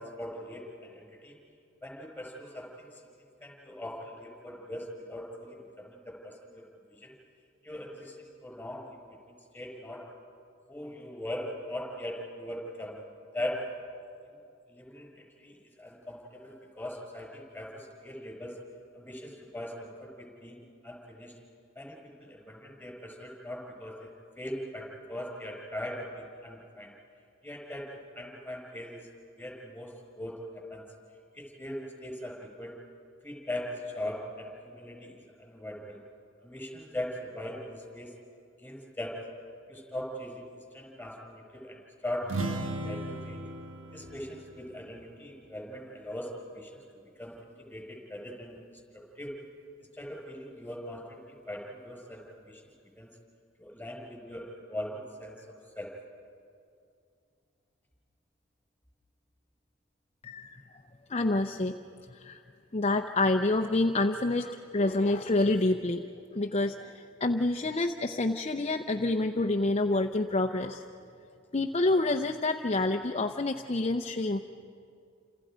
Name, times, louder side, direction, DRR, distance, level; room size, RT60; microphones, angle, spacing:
voice 1, 0.0-1.4 1.8-3.0 3.4-6.6 6.9-7.2 7.6-9.1 9.5-10.0 10.7-13.0 13.3-13.7 14.7-18.6 18.9-21.3 21.8-24.1 24.4-26.9 27.4-29.1 29.4-29.9 30.2-30.8 31.3-32.7 33.2-36.0 36.4-38.1 38.6-39.2 39.7-43.4 43.9-46.8 47.2-49.3 49.9-52.6 53.0-53.1 53.6-55.4 55.7-55.9, left 1 dB, 10° left, 0 dB, 5.7 m, -40 dB
sound 1, 42.2-46.0, right 2 dB, 90° right, 1.5 m, -37 dB
voice 2, 60.2-60.6 61.1-61.8 62.1-62.4 62.7-70.8 71.5-74.4, left 2 dB, 30° left, 4 dB, 0.7 m, -28 dB
29.5 x 27.5 x 5.1 m, 2.4 s
head